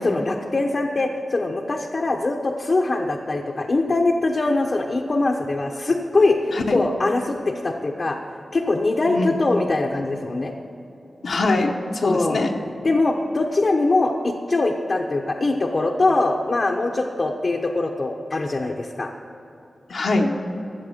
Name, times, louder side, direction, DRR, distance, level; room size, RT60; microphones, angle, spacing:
voice 1, 0.0-8.2 8.5-10.5 12.0-12.4 12.8-19.1, left 2 dB, 45° left, 0 dB, 0.8 m, -22 dB
voice 2, 6.5-6.8 9.1-9.3 11.2-12.6 19.9-20.3, left 2 dB, 75° left, 0 dB, 1.0 m, -23 dB
14.0 x 7.3 x 7.3 m, 2.8 s
wide cardioid pair, 100°, 0 cm